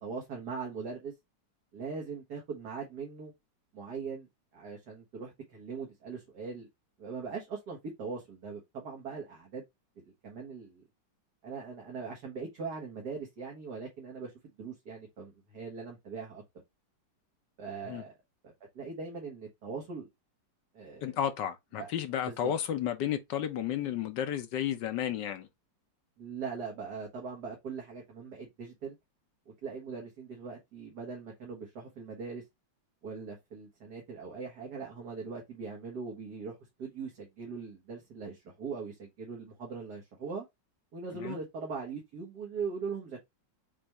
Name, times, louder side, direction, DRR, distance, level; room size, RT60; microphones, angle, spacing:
voice 1, 0.0-1.1 1.7-3.3 3.7-6.7 7.0-9.6 10.2-10.8 11.4-14.3 14.6-16.4 17.6-18.1 18.8-20.1 20.7-21.2 21.8-21.9 22.2-22.5 26.2-29.0 29.6-32.4 33.0-40.5 40.9-43.3, right 5 dB, 60° right, 1.9 m, -40 dB
voice 2, 21.0-25.5 41.1-41.4, left 10 dB, 75° left, 1.4 m, -32 dB
6.9 x 2.5 x 3.0 m
omnidirectional pair, 2.0 m